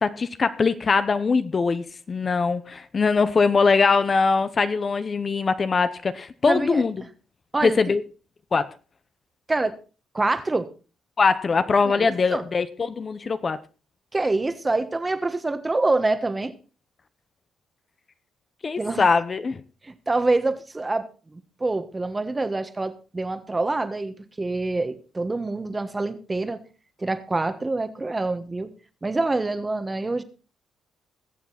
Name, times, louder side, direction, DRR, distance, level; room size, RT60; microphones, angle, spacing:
voice 1, 0.0-7.0 7.6-8.0 8.5-8.7 11.2-13.6 18.6-19.6, left 4 dB, 35° left, 0.8 m, -22 dB
voice 2, 6.5-6.8 7.5-7.8 9.5-9.8 10.1-10.7 11.8-12.4 14.1-16.5 18.8-19.1 19.8-26.6 27.0-28.7 29.0-30.2, right 2 dB, 20° right, 1.4 m, -26 dB
21.5 x 7.3 x 4.2 m
cardioid pair, 90°, 0 cm